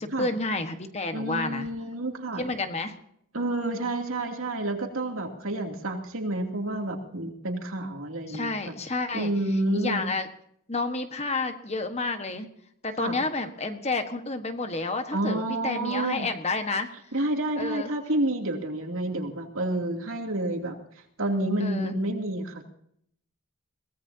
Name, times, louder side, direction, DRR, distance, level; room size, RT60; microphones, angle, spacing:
voice 1, 0.0-1.7 2.4-2.9 8.3-9.3 9.7-10.3 10.7-12.5 12.8-16.9 17.6-17.9 21.6-22.0, left 3 dB, 30° left, 7 dB, 1.4 m, -30 dB
voice 2, 1.1-2.5 3.3-8.7 9.1-10.0 13.0-13.2 15.1-16.3 17.1-20.8 21.2-22.7, right 1 dB, 70° right, 2 dB, 2.8 m, -29 dB
23.0 x 18.0 x 2.8 m, 0.68 s
head